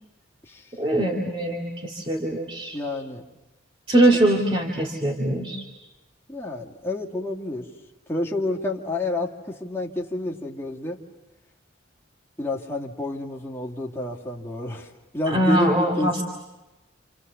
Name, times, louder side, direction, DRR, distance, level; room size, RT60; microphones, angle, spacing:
voice 1, 0.8-2.8 3.9-5.6 15.3-16.2, right 1 dB, 25° right, -1 dB, 2.4 m, -22 dB
voice 2, 2.7-3.2 6.3-7.7 8.1-11.0 12.4-16.2, left 1 dB, 10° left, -3 dB, 2.3 m, -29 dB
29.5 x 28.5 x 7.0 m, 1.0 s
head